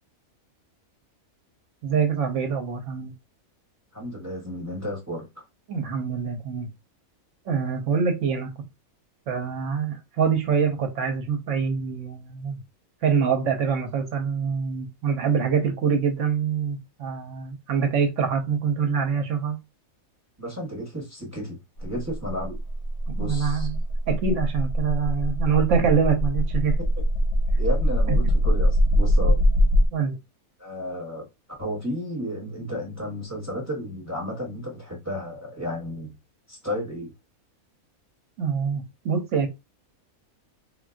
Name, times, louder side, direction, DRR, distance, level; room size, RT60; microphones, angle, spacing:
voice 1, 1.8-3.1 5.7-6.7 7.5-8.5 9.3-12.6 13.0-19.6 23.1-23.8 24.1-26.8 28.1-28.2 29.9-30.1 38.4-39.5, right 6 dB, 65° right, 0.9 m, -25 dB
voice 2, 3.9-5.3 20.4-22.6 23.2-23.7 27.6-29.4 30.6-31.3 31.6-36.1 36.5-37.1, equal, 15° right, 0.8 m, -32 dB
sound 1, 21.8-29.9, equal, 85° left, 1.1 m, -22 dB
3.6 x 2.2 x 2.4 m
omnidirectional pair, 1.5 m